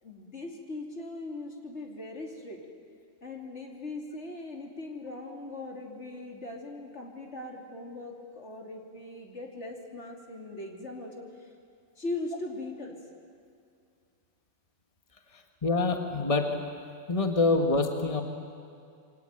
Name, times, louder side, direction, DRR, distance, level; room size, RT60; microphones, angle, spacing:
voice 1, 0.0-2.7 3.2-11.5 12.0-13.0, left 2 dB, 70° left, 1 dB, 3.3 m, -40 dB
voice 2, 15.3-16.6 17.1-18.2, left 3 dB, 30° left, 4 dB, 1.6 m, -26 dB
27.5 x 23.5 x 9.1 m, 2.4 s
omnidirectional pair, 1.2 m